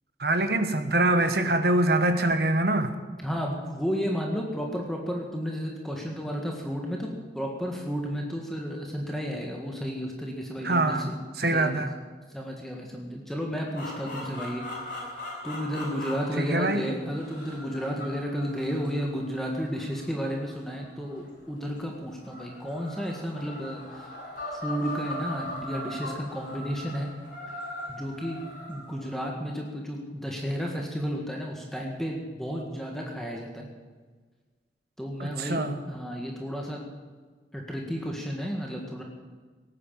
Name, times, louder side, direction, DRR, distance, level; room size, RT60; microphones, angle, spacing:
voice 1, 0.2-2.9 10.6-11.1 11.4-11.9 16.4-16.8 35.2-35.8, right 2 dB, 60° right, 8 dB, 1.3 m, -24 dB
voice 2, 3.2-7.1 7.3-11.9 12.3-14.6 14.9-15.2 15.4-24.1 24.5-27.1 27.9-33.7 35.0-35.6 35.9-36.8 37.5-39.0, equal, ahead, 0 dB, 1.7 m, -32 dB
sound 1, 13.7-21.5 22.2-29.2, left 1 dB, 50° left, 6.4 m, -40 dB
17.5 x 9.6 x 7.5 m, 1.4 s
head